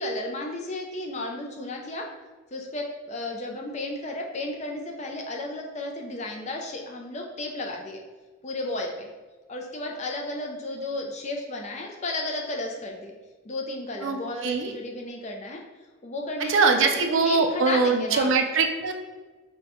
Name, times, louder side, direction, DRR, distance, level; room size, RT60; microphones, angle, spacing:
voice 1, 0.0-2.1 2.5-8.0 8.4-9.1 9.5-13.2 13.4-15.6 16.0-18.3, left 2 dB, 35° left, 1 dB, 0.4 m, -33 dB
voice 2, 14.0-14.7 16.4-18.9, right 4 dB, 65° right, 5 dB, 0.4 m, -22 dB
5.1 x 2.3 x 3.0 m, 1.3 s
head